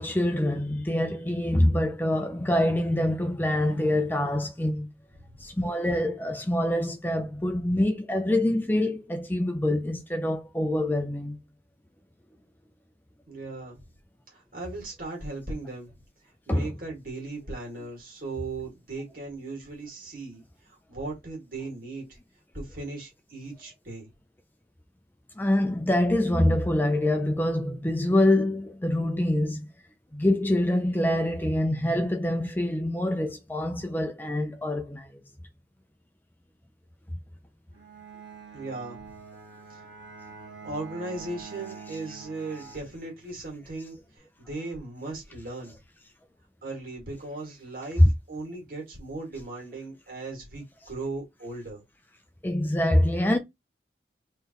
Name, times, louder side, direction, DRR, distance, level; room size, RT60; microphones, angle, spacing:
voice 1, 0.0-4.9 5.4-11.4 16.5-16.7 25.4-29.7 30.1-35.1 48.0-48.1 52.4-53.4, left 1 dB, 10° left, 0.4 m, -25 dB
voice 2, 13.3-13.8 14.3-22.2 22.5-24.1 38.5-39.2 39.7-39.8 40.6-45.7 46.6-51.8, right 2 dB, 50° right, 2.1 m, -38 dB
Bowed string instrument, 37.7-43.5, right 5 dB, 85° right, 1.2 m, -45 dB
3.8 x 3.2 x 2.9 m
head